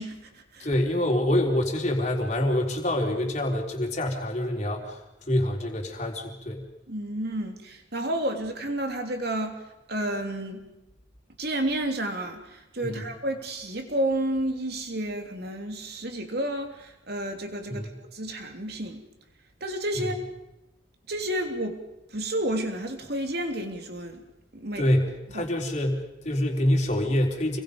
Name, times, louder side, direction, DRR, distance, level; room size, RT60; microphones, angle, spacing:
voice 1, 0.0-0.7 6.9-10.6 11.4-19.0 19.6-20.2 21.1-21.8 22.1-24.2 24.5-24.9 25.3-25.5, right 1 dB, 55° right, 4 dB, 3.1 m, -31 dB
voice 2, 0.6-5.0 5.3-6.6 12.8-13.0 17.7-17.9 24.8-27.6, left 1 dB, 35° left, 1 dB, 4.1 m, -26 dB
29.5 x 22.5 x 5.4 m, 0.92 s
head